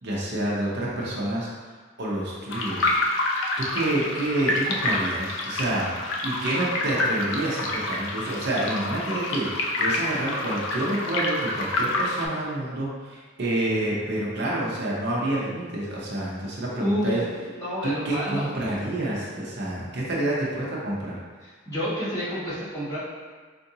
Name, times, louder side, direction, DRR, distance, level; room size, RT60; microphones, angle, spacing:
voice 1, 0.0-1.5 2.0-3.0 3.6-5.9 6.2-17.2 17.8-21.2, right 1 dB, 60° right, -5 dB, 0.7 m, -28 dB
sound 1, 2.5-12.3, left 2 dB, 80° left, 0.5 m, -28 dB
voice 2, 16.7-18.5 21.6-23.0, equal, 15° left, -13 dB, 1.4 m, -29 dB
4.5 x 2.5 x 2.7 m, 1.4 s
head